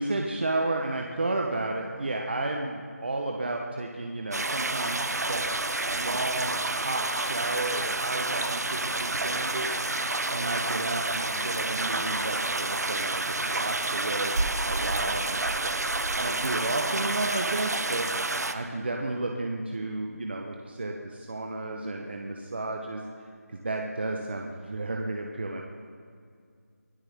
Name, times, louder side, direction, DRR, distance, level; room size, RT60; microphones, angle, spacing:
voice 1, 0.0-5.5 5.9-9.7 10.3-14.3 14.6-23.0 23.5-25.6, right 2 dB, 40° right, 1 dB, 1.0 m, -32 dB
sound 1, 4.3-18.6, right 2 dB, 75° right, 1.0 m, -29 dB
23.5 x 14.0 x 3.6 m, 2.2 s
figure-of-eight pair, 175°, 9 cm